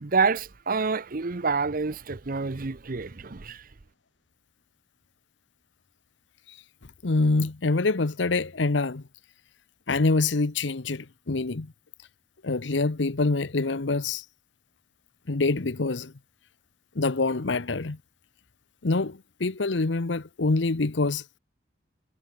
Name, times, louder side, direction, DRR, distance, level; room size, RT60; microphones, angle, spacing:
voice 1, 0.0-3.7, right 4 dB, 45° right, 0.8 m, -27 dB
voice 2, 7.0-9.0 9.9-11.7 12.4-14.2 15.3-16.1 16.9-18.0 18.8-21.2, left 3 dB, 65° left, 0.9 m, -25 dB
head